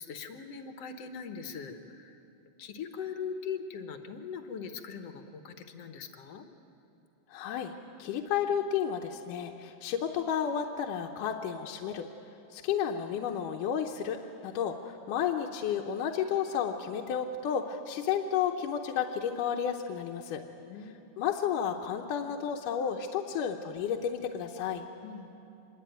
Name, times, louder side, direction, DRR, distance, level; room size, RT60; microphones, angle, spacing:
voice 1, 0.0-2.2 2.6-6.5 20.6-21.2 25.0-25.3, left 6 dB, 60° left, 7 dB, 1.9 m, -41 dB
voice 2, 7.3-7.7 8.0-12.1 12.5-20.4 21.2-24.8, left 8 dB, 80° left, 1 dB, 2.5 m, -32 dB
26.0 x 22.0 x 9.3 m, 2.9 s
omnidirectional pair, 3.8 m